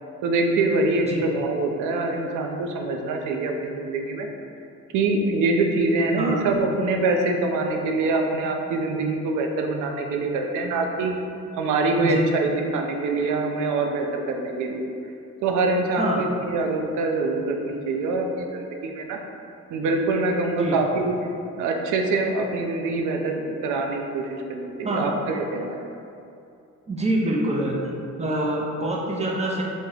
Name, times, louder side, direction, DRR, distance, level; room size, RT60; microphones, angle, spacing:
voice 1, 0.2-4.3 4.9-11.1 11.6-14.9 15.4-19.2 19.7-21.1 21.6-25.8, right 3 dB, 80° right, 3 dB, 0.5 m, -24 dB
voice 2, 26.9-27.8 28.2-29.6, right 1 dB, 20° right, -3 dB, 0.5 m, -25 dB
3.0 x 2.1 x 3.7 m, 2.6 s
cardioid pair, 90°, 30 cm